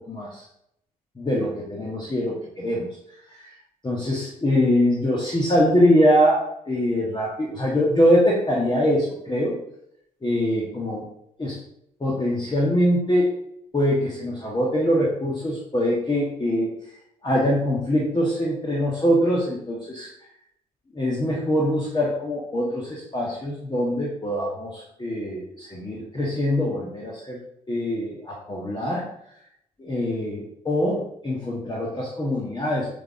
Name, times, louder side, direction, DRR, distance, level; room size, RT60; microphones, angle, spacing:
voice 1, 0.1-0.4 1.2-2.9 3.3-3.6 3.8-9.6 10.2-11.1 11.4-11.6 12.0-13.3 13.7-16.7 17.2-20.1 20.9-27.4 27.7-29.1 29.8-32.9, equal, 25° left, -4 dB, 1.6 m, -23 dB
7.6 x 3.8 x 3.8 m, 0.76 s
figure-of-eight pair, 40°, 20 cm